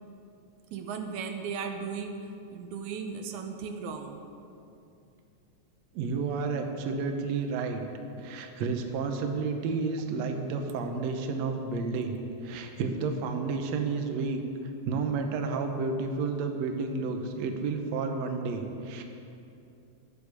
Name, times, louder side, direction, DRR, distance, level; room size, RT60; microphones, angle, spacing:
voice 1, 0.7-4.3 12.5-12.6, right 5 dB, 85° right, 5 dB, 2.3 m, -36 dB
voice 2, 5.9-7.8 8.2-12.2 12.4-14.4 14.8-19.0, right 4 dB, 70° right, 5 dB, 2.1 m, -31 dB
13.5 x 9.8 x 6.7 m, 2.7 s
omnidirectional pair, 3.3 m